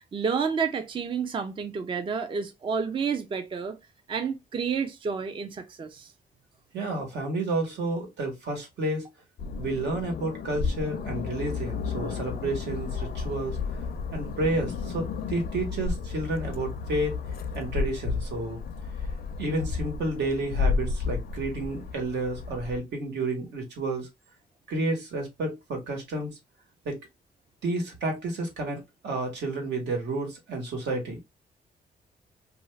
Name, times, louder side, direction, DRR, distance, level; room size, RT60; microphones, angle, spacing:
voice 1, 0.1-3.8 4.1-6.1, right 6 dB, 30° right, 0.4 m, -30 dB
voice 2, 6.7-9.1 9.6-13.6 14.1-17.2 17.5-18.6 19.4-24.1 24.7-26.4 26.8-27.0 27.6-31.2, right 2 dB, 80° right, 1.3 m, -30 dB
sound 1, 9.4-22.8, left 5 dB, 60° left, 0.5 m, -32 dB
2.5 x 2.4 x 3.1 m
cardioid pair, 125°, 18 cm